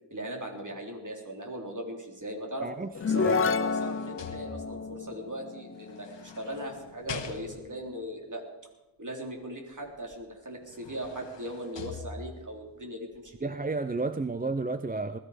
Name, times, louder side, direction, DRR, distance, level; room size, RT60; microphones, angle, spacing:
voice 1, 0.1-2.7 3.0-8.4 9.0-13.5, right 1 dB, 45° right, 1 dB, 3.9 m, -38 dB
voice 2, 2.6-2.9 3.2-3.4 13.4-15.2, right 3 dB, 20° right, 12 dB, 0.6 m, -32 dB
sound 1, 2.8-5.0 5.9-7.9 10.1-10.2 10.6-12.6 13.1-13.3, left 5 dB, 80° left, 1.2 m, -44 dB
sound 2, 3.0-6.6, left 5 dB, 30° left, 0.5 m, -30 dB
20.0 x 14.0 x 5.1 m, 1.0 s
wide cardioid pair, 75°, 43 cm